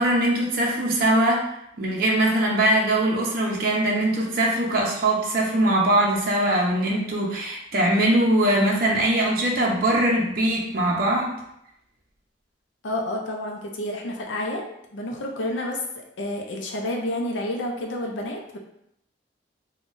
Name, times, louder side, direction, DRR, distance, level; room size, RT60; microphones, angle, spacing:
voice 1, 0.0-1.4 1.8-11.4, right 1 dB, 50° right, -3 dB, 0.6 m, -21 dB
voice 2, 12.8-18.6, left 1 dB, 85° left, 1 dB, 0.5 m, -30 dB
3.6 x 2.3 x 2.5 m, 0.76 s
head